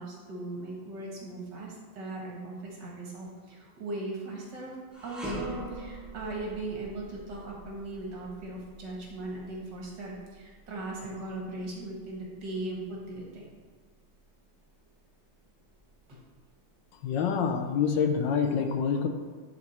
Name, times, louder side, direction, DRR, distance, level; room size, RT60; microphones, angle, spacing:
voice 1, 0.0-13.5 16.1-16.2, right 2 dB, 65° right, -2 dB, 2.2 m, -39 dB
sound 1, 4.9-14.2 14.6-14.8 15.6-16.5, right 1 dB, ahead, 1.3 m, -44 dB
voice 2, 17.0-19.1, left 6 dB, 75° left, 5 dB, 1.3 m, -26 dB
10.5 x 4.4 x 4.3 m, 1.4 s
omnidirectional pair, 2.1 m